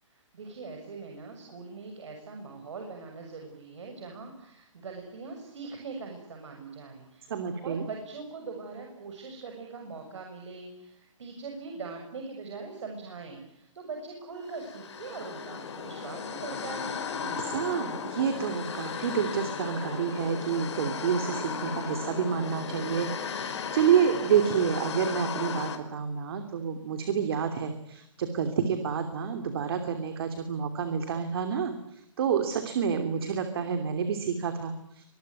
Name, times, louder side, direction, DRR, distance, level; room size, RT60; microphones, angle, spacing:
voice 1, 0.1-17.0, right 4 dB, 65° right, 3 dB, 6.9 m, -42 dB
voice 2, 7.3-7.9 17.2-35.0, right 7 dB, 50° right, 7 dB, 3.0 m, -29 dB
sound 1, 14.5-25.8, left 6 dB, 60° left, 5.3 m, -35 dB
25.5 x 22.0 x 9.6 m, 0.74 s
hypercardioid pair, 160°, 17 cm